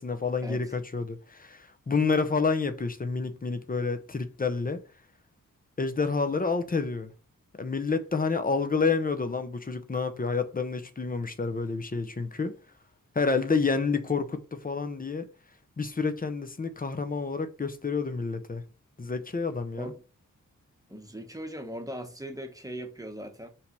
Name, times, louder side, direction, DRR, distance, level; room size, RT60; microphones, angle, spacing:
voice 1, 0.0-4.8 5.8-7.1 7.6-12.5 13.1-15.3 15.8-18.6 19.0-19.9, left 4 dB, 25° left, 0.8 m, -29 dB
voice 2, 20.9-23.5, equal, 10° right, 1.0 m, -39 dB
5.5 x 3.4 x 5.4 m
wide cardioid pair, 115°, 32 cm